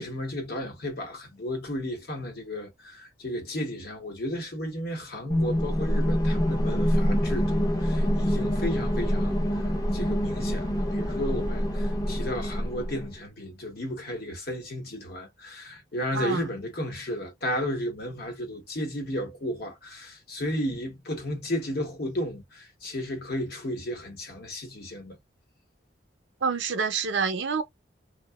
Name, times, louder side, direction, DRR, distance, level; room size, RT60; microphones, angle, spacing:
voice 1, 0.0-9.4 9.9-25.2, left 1 dB, 55° left, 0.9 m, -33 dB
sound 1, 5.3-13.1, equal, 20° left, 0.6 m, -26 dB
voice 2, 16.1-16.5 26.4-27.6, right 5 dB, 70° right, 0.5 m, -27 dB
2.7 x 2.0 x 2.2 m
head